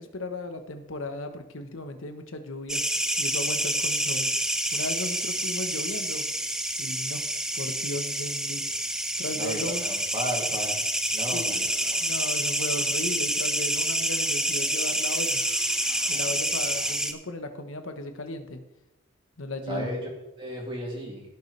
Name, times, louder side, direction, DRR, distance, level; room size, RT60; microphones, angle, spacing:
voice 1, 0.0-2.8 3.2-4.3 4.7-6.2 6.8-7.3 7.5-8.6 9.2-9.9 11.3-15.4 16.1-18.6 19.4-19.9, left 1 dB, 80° left, 7 dB, 1.2 m, -36 dB
sound 1, 2.7-17.1, right 1 dB, 5° right, 0.5 m, -28 dB
voice 2, 9.3-10.8 11.1-11.7 11.9-12.1 19.7-20.1 20.4-21.2, equal, 25° right, -2 dB, 2.8 m, -34 dB
sound 2, 14.1-17.0, left 3 dB, 25° left, 1.7 m, -47 dB
16.5 x 6.9 x 3.4 m, 0.96 s
head